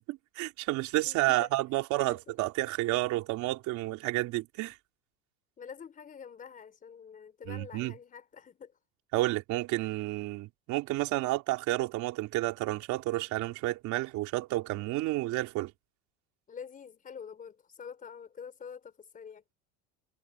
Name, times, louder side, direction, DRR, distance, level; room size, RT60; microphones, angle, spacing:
voice 1, 0.1-4.8 7.5-7.9 9.1-15.7, right 18 dB, 55° right, 3.4 m, -30 dB
voice 2, 1.1-1.5 1.8-2.3 5.6-8.7 16.5-19.4, left 7 dB, 25° left, 4.3 m, -47 dB
cardioid pair, 145°, 34 cm